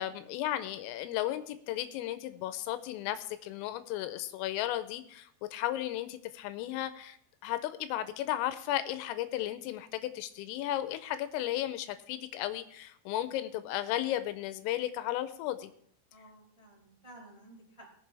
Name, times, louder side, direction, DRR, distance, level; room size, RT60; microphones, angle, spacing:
voice 1, 0.0-7.2 7.4-15.7, left 13 dB, 85° left, 11 dB, 3.3 m, -34 dB
voice 2, 16.1-17.9, right 1 dB, 5° left, -3 dB, 3.4 m, -54 dB
20.0 x 7.3 x 3.3 m, 0.66 s
omnidirectional pair, 5.9 m